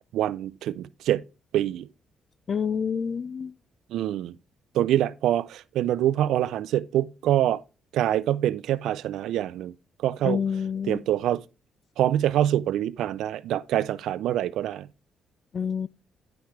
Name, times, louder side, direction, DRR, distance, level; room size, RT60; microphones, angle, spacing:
voice 1, 0.1-1.2 1.5-1.9 3.9-4.3 4.7-7.6 7.9-9.7 10.0-10.4 10.9-11.4 12.0-14.9, right 12 dB, 80° right, 0.3 m, -25 dB
voice 2, 2.5-3.5 10.2-11.0 15.5-15.9, left 6 dB, 45° left, 0.4 m, -28 dB
10.0 x 5.8 x 3.1 m
cardioid pair, 90°, 0 cm